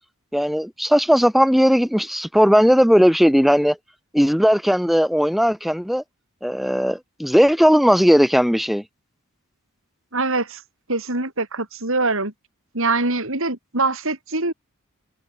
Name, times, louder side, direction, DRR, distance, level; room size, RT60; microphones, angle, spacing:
voice 1, 0.3-3.8 4.1-6.0 6.4-8.8, equal, ahead, 0.7 m, -17 dB
voice 2, 10.1-10.6 10.9-12.3 12.7-14.5, right 3 dB, 65° right, 5.8 m, -23 dB
head